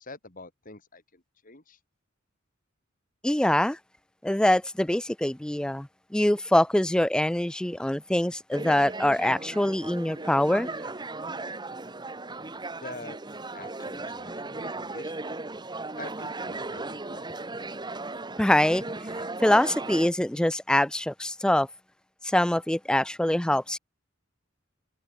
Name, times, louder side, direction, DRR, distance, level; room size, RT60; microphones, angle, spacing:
voice 1, 0.0-1.8 12.8-13.2 13.5-15.4 16.0-17.2, left 3 dB, 40° left, 3.1 m, -46 dB
voice 2, 3.2-3.8 4.2-10.7 18.4-18.8 19.4-21.7 22.2-23.8, left 1 dB, 5° left, 0.3 m, -24 dB
sound 1, 8.5-20.1, right 2 dB, 20° right, 1.5 m, -36 dB
head